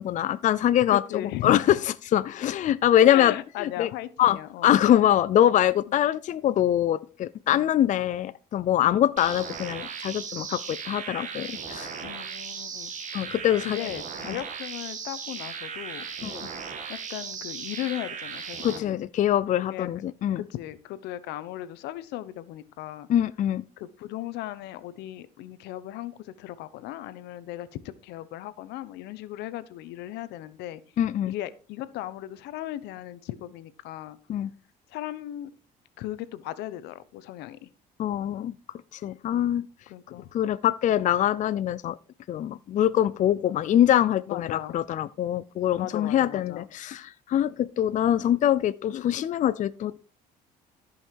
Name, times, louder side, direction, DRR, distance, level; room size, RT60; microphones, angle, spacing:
voice 1, 0.0-3.9 4.2-11.9 13.1-13.8 16.2-16.5 18.6-20.4 23.1-23.6 31.0-31.3 34.3-34.5 38.0-38.5 38.9-39.7 40.3-42.0 42.3-50.0, left 11 dB, 45° left, 0.5 m, -24 dB
voice 2, 0.9-1.8 3.1-4.7 5.9-6.0 7.5-7.7 12.0-12.9 13.6-16.1 16.9-19.0 19.6-20.0 20.3-23.1 23.8-30.8 31.3-34.2 34.9-35.5 36.0-37.7 39.3-39.6 39.9-40.3 44.3-44.8 45.8-46.7, left 14 dB, 90° left, 1.0 m, -37 dB
sound 1, 9.2-18.8, right 6 dB, 45° right, 2.0 m, -37 dB
14.0 x 5.7 x 4.6 m
cardioid pair, 110°, 17 cm